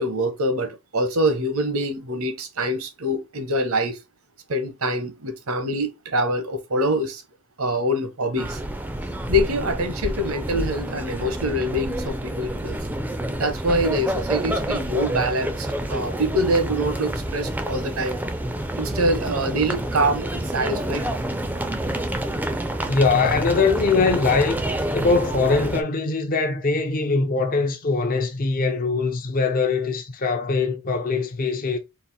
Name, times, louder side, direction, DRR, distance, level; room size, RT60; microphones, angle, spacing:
voice 1, 0.0-4.0 4.5-7.2 7.6-8.6 9.3-12.8 13.4-18.2 18.8-21.1, equal, 75° right, 1.0 m, -25 dB
sound 1, 8.4-25.8, right 1 dB, 10° right, 0.5 m, -28 dB
voice 2, 22.8-24.6 24.9-31.8, left 4 dB, 40° left, 0.6 m, -22 dB
4.1 x 2.5 x 4.0 m
head